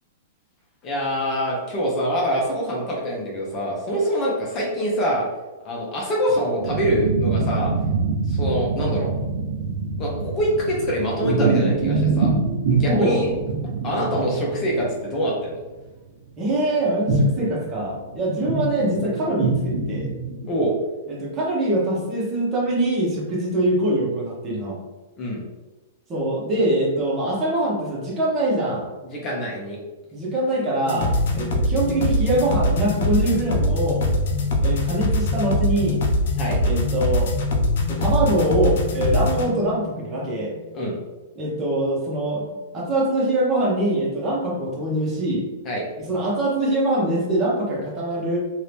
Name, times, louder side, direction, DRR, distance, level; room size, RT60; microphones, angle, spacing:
voice 1, 0.8-5.3 5.6-7.7 8.3-9.1 10.0-12.3 12.7-13.3 13.8-15.6 20.5-20.7 25.2-25.4 29.0-29.8 36.4-36.6 40.7-41.0 45.6-45.9, equal, 30° left, -3 dB, 0.9 m, -25 dB
sound 1, 6.6-15.0 15.4-15.5 17.1-17.3 17.6-20.6, right 3 dB, 75° right, 0.8 m, -24 dB
voice 2, 12.9-13.2 16.4-20.1 21.1-24.8 26.1-28.9 30.1-34.0 34.6-36.0 36.6-37.3 37.9-40.5 41.4-45.4 46.1-48.4, right 1 dB, 25° right, -5 dB, 1.2 m, -23 dB
sound 2, 30.8-40.8, left 1 dB, 70° left, 0.6 m, -23 dB
2.8 x 2.7 x 3.5 m, 1.1 s
hypercardioid pair, 135°, 0 cm